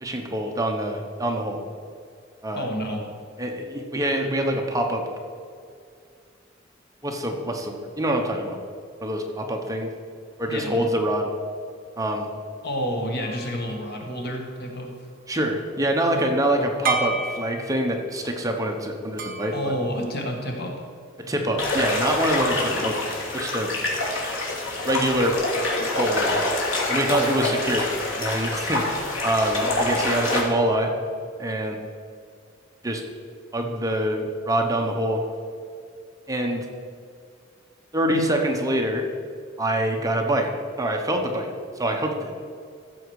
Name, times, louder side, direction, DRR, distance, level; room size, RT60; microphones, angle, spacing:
voice 1, 0.0-1.6 2.4-2.7 3.4-5.0 7.0-8.6 9.0-9.9 10.4-11.3 12.0-12.3 15.3-19.7 21.2-23.0 23.3-23.7 24.9-25.4 26.0-26.4 26.9-27.9 28.2-30.9 31.4-31.8 32.8-33.0 33.5-35.2 36.3-36.7 37.9-39.1 39.6-40.5 40.8-41.5 41.8-42.3, right 1 dB, 20° right, 2 dB, 1.0 m, -25 dB
voice 2, 2.5-3.1 10.5-10.9 12.6-14.9 19.5-20.8 27.1-27.5, equal, 55° left, 1 dB, 1.5 m, -29 dB
sound 1, 13.2-14.9 16.8-18.1 19.2-20.7, right 4 dB, 45° right, 1.2 m, -33 dB
sound 2, 21.6-30.4, left 2 dB, 80° left, 2.8 m, -26 dB
14.5 x 7.1 x 4.8 m, 2.3 s
head